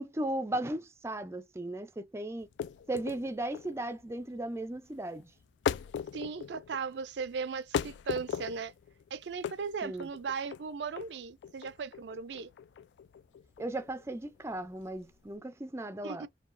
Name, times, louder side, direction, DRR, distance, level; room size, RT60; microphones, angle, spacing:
voice 1, 0.0-2.5 2.9-5.3 9.8-10.1 13.6-16.3, right 1 dB, 15° right, 0.4 m, -36 dB
sound 1, 2.4-15.4, left 7 dB, 80° left, 0.3 m, -39 dB
voice 2, 6.1-8.7 9.1-12.5 16.0-16.3, right 5 dB, 80° right, 0.4 m, -37 dB
4.6 x 2.3 x 2.5 m
head